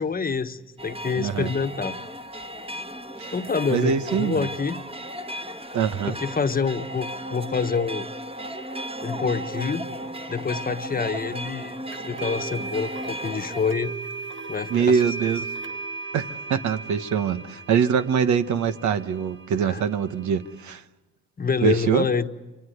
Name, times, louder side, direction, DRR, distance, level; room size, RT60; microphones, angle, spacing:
voice 1, 0.0-2.0 3.3-4.8 6.0-8.1 9.0-9.9 10.3-11.8 12.0-13.9 14.5-15.0 19.6-19.9 21.4-22.3, left 5 dB, 30° left, 8 dB, 1.3 m, -27 dB
sound 1, 0.8-13.7, equal, 20° right, 1.6 m, -35 dB
voice 2, 1.2-1.5 3.2-3.3 3.7-4.5 5.7-6.2 14.7-15.5 16.1-20.8 21.6-22.1, right 7 dB, 70° right, 10 dB, 1.3 m, -23 dB
sound 2, 11.9-20.8, right 4 dB, 40° right, 1.2 m, -37 dB
26.0 x 25.0 x 8.1 m, 1.1 s
cardioid pair, 90°, 30 cm